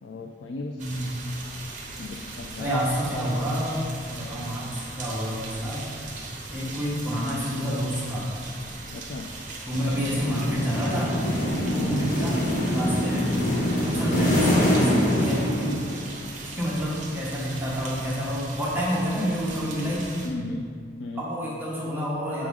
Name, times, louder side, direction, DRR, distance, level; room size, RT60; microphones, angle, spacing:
voice 1, 0.0-0.9 2.0-2.8 5.6-5.7 8.9-9.3 11.7-12.0 13.9-14.3 20.2-20.7 21.0-21.2, left 3 dB, 80° left, 3 dB, 0.4 m, -35 dB
voice 2, 0.8-1.1 2.6-3.8 4.0-5.9 6.5-8.3 9.6-11.2 11.7-12.4 12.7-13.3 13.8-15.8 16.4-20.2 21.2-22.5, equal, 10° right, -7 dB, 1.1 m, -28 dB
sound 1, 0.8-20.3, right 2 dB, 45° right, 0.9 m, -39 dB
sound 2, 9.7-16.2, equal, 45° left, 1.2 m, -25 dB
7.1 x 3.7 x 4.8 m, 2.1 s
head